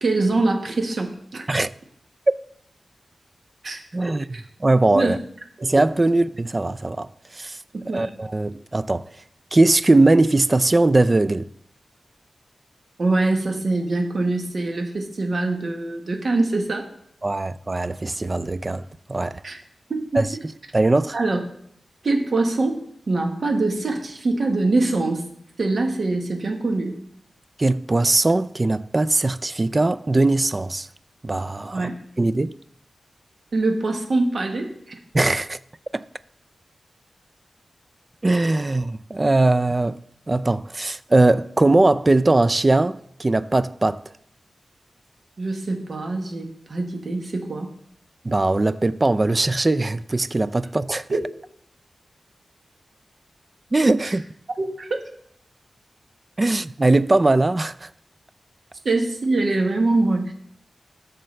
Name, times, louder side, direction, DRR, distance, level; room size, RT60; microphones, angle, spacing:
voice 1, 0.0-1.4 3.6-3.8 4.3-4.4 4.9-5.1 5.6-5.7 7.7-8.0 13.0-16.9 19.4-19.6 19.9-20.2 21.1-21.4 22.0-25.2 25.6-27.0 31.7-31.9 33.5-35.0 45.4-47.7 51.1-51.2 54.0-54.1 54.6-55.0 58.8-60.3, right 2 dB, 55° right, 1.3 m, -23 dB
voice 2, 3.9-4.3 4.6-5.2 5.6-7.1 7.3-7.6 7.9-9.1 9.5-11.5 17.2-19.4 20.1-20.3 20.7-21.2 27.6-30.9 31.2-31.9 32.2-32.5 35.1-35.6 35.9-36.0 38.2-40.0 40.3-44.0 48.2-51.1 53.7-54.2 56.4-57.9, right 2 dB, 25° right, 0.3 m, -20 dB
13.0 x 6.6 x 3.3 m
wide cardioid pair, 135°, 0 cm